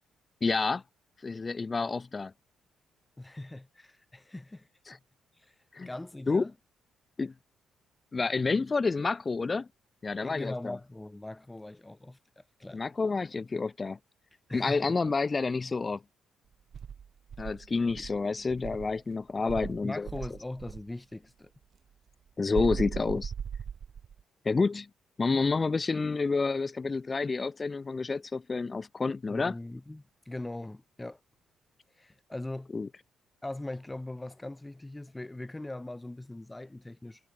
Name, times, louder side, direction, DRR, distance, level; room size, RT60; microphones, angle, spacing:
voice 1, 0.4-0.8 1.2-2.3 4.9-5.0 5.7-5.9 6.3-6.5 7.2-7.3 8.1-9.7 10.0-10.8 12.7-14.0 14.5-16.0 17.4-20.1 22.4-23.3 24.4-24.9 25.2-29.5 32.7-32.9, left 4 dB, 30° left, 0.5 m, -29 dB
voice 2, 3.2-5.0 5.4-6.5 10.1-12.8 14.5-15.0 17.9-18.1 19.8-21.5 29.3-31.2 32.0-32.7 33.4-37.2, left 2 dB, 10° left, 7.4 m, -41 dB
Insect, 16.7-19.0 19.5-20.9 22.5-24.2, right 7 dB, 55° right, 1.5 m, -38 dB
cardioid pair, 90°, 0 cm